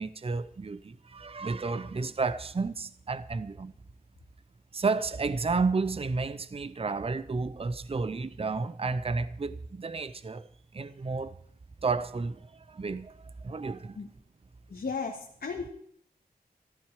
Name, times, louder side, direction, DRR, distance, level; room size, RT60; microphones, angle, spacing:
voice 1, 0.0-3.7 4.7-10.5 10.7-11.4 11.8-14.0, right 4 dB, 35° right, 0.7 m, -32 dB
voice 2, 14.7-15.7, left 5 dB, 80° left, 1.8 m, -35 dB
14.5 x 13.5 x 4.9 m
wide cardioid pair, 90°, 16 cm